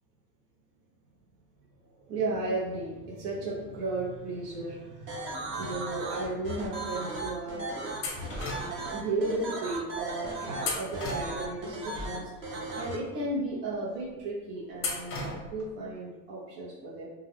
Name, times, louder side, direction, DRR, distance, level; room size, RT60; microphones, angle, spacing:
voice 1, 1.8-7.7 8.9-17.1, right 2 dB, 70° right, -5 dB, 0.8 m, -34 dB
sound 1, 5.1-13.0, right 2 dB, 25° right, 0.4 m, -36 dB
sound 2, 8.0-8.9 10.6-11.7 14.8-15.7, left 3 dB, 25° left, 0.5 m, -35 dB
2.3 x 2.2 x 3.3 m, 1.2 s
supercardioid pair, 120°, 50 cm